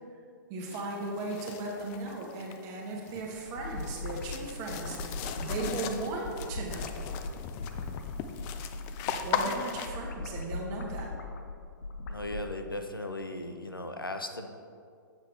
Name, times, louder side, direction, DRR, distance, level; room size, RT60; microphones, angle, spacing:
voice 1, 0.5-7.0 9.2-11.1, right 2 dB, 30° right, 0 dB, 1.3 m, -37 dB
sound 1, 0.7-9.9, left 8 dB, 25° left, 0.4 m, -38 dB
sound 2, 3.2-12.5, left 3 dB, 50° left, 0.8 m, -39 dB
voice 2, 12.1-14.5, left 1 dB, 90° left, 6 dB, 0.7 m, -37 dB
7.5 x 7.3 x 3.3 m, 2.3 s
figure-of-eight pair, 115°, 11 cm